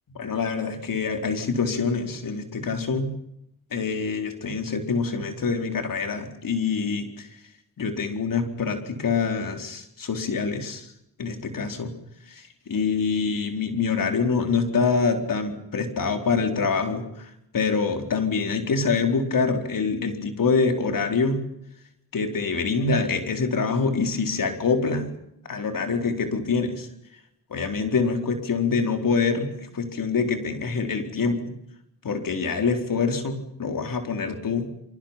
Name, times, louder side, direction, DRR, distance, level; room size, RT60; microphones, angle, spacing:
voice 1, 0.1-3.2 3.7-7.3 7.8-10.9 11.2-11.9 12.3-21.5 22.1-25.1 25.5-26.9 27.5-31.5 32.0-34.7, left 4 dB, 65° left, 5 dB, 4.3 m, -25 dB
28.0 x 24.0 x 5.9 m, 0.78 s
cardioid pair, 65°, 36 cm